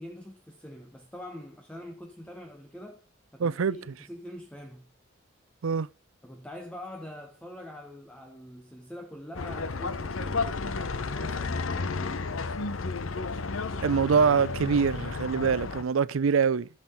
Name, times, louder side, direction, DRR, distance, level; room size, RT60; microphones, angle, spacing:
voice 1, 0.0-3.0 3.3-4.9 6.2-12.3, equal, 5° left, 0.9 m, -44 dB
voice 2, 3.4-3.8 5.6-5.9 13.8-16.7, right 6 dB, 85° right, 0.5 m, -24 dB
sound 1, 9.4-15.8, left 4 dB, 85° left, 0.8 m, -32 dB
13.0 x 7.5 x 3.7 m
head